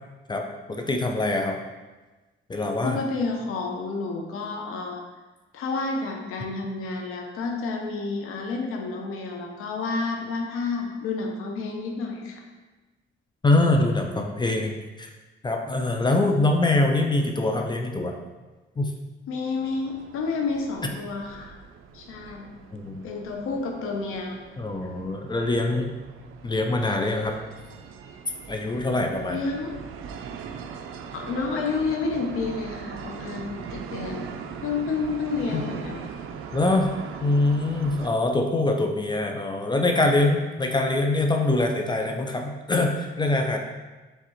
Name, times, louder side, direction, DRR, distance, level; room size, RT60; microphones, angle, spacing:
voice 1, 0.7-1.6 2.5-3.0 13.4-15.1 15.4-18.1 18.8-18.9 22.7-23.0 24.6-25.9 26.4-27.3 28.5-29.4 35.5-35.6 36.5-36.9 37.2-43.6, left 2 dB, 20° left, 3 dB, 0.4 m, -24 dB
voice 2, 2.8-5.0 5.5-12.4 13.6-13.7 19.3-21.6 21.9-22.5 23.0-24.4 29.3-29.7 31.1-34.3 34.6-36.0, left 4 dB, 85° left, 2 dB, 0.7 m, -30 dB
sound 1, 19.6-38.1, right 6 dB, 75° right, 0.4 m, -40 dB
4.8 x 3.2 x 3.0 m, 1.2 s
cardioid pair, 95°, 21 cm